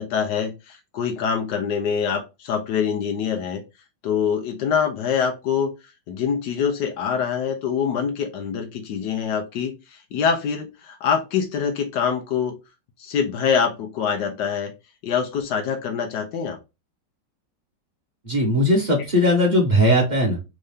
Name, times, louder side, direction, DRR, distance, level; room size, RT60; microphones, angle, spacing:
voice 1, 0.0-3.6 4.0-5.7 6.1-12.5 13.0-14.7 15.0-16.6, left 7 dB, 75° left, 5 dB, 1.2 m, -24 dB
voice 2, 18.2-20.4, equal, 30° right, -2 dB, 1.1 m, -19 dB
3.7 x 2.6 x 3.3 m, 0.26 s
omnidirectional pair, 1.9 m